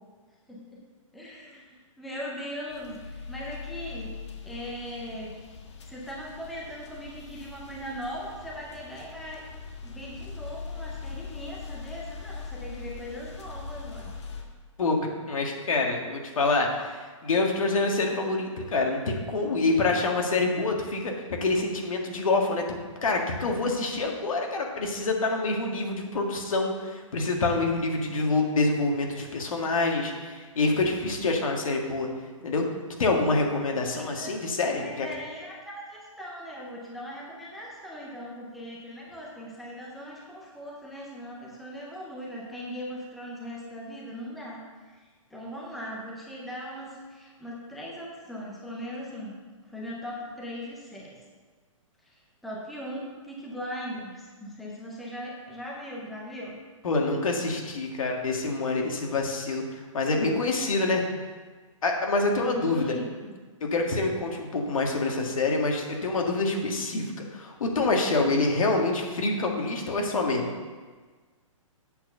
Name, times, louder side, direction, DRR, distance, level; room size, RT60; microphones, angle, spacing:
voice 1, 0.5-0.8 1.1-5.3 5.8-9.4 9.8-14.1 33.9-34.4 34.8-49.4 49.6-51.2 52.0-56.6 62.4-63.3, equal, ahead, -4 dB, 0.5 m, -39 dB
sound 1, 2.7-14.4, left 5 dB, 55° left, 1.4 m, -41 dB
voice 2, 14.8-32.1 32.4-32.7 33.0-35.1 56.8-61.0 61.8-62.9 63.6-70.5, left 3 dB, 80° left, 1 dB, 1.9 m, -26 dB
8.0 x 4.5 x 6.7 m, 1.4 s
hypercardioid pair, 170°, 17 cm